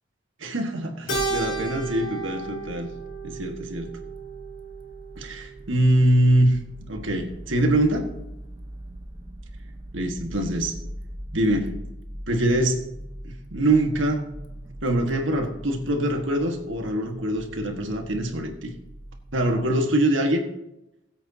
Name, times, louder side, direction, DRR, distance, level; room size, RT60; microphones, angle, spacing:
voice 1, 0.4-2.9 3.2-3.9 5.2-6.6 6.9-8.1 9.9-10.8 11.3-11.8 12.3-12.8 13.2-14.4 14.8-18.7 19.3-20.5, right 1 dB, 85° right, 3 dB, 1.7 m, -23 dB
Keyboard (musical), 1.1-5.7, right 3 dB, 85° left, 4.3 m, -33 dB
sound 1, 1.1-19.7, equal, 25° right, 1.0 m, -41 dB
20.5 x 8.2 x 2.8 m, 0.87 s
head